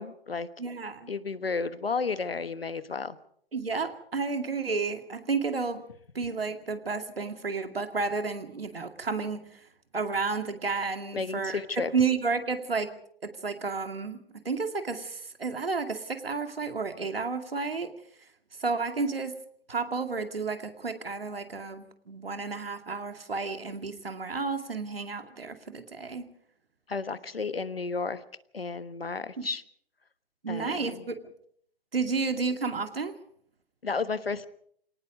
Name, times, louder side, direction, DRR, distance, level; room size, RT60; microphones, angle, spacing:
voice 1, 0.0-0.5 1.1-3.2 11.1-11.9 26.9-28.2 28.5-29.6 30.5-31.0 33.8-34.5, left 4 dB, 80° left, 14 dB, 1.4 m, -32 dB
voice 2, 0.6-1.1 3.5-5.8 6.1-9.6 9.9-11.6 11.9-17.9 18.6-19.4 19.7-26.2 29.4-29.5 30.4-31.2 31.9-33.2, right 4 dB, 80° right, 7 dB, 2.4 m, -31 dB
27.0 x 18.5 x 5.2 m, 0.64 s
figure-of-eight pair, 120°, 29 cm